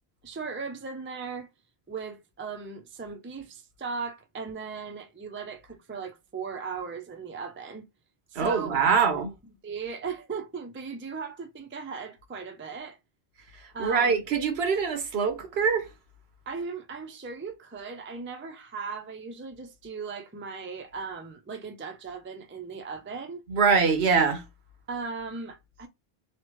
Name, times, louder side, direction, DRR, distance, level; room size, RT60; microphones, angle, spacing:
voice 1, 0.2-1.5 1.9-7.8 8.3-9.3 9.6-13.0 13.7-14.2 16.5-23.4 24.9-25.9, right 5 dB, 20° right, 0.3 m, -37 dB
voice 2, 8.3-9.3 13.8-15.9 23.5-24.4, right 5 dB, 80° right, 1.1 m, -23 dB
3.2 x 2.1 x 3.0 m
omnidirectional pair, 1.0 m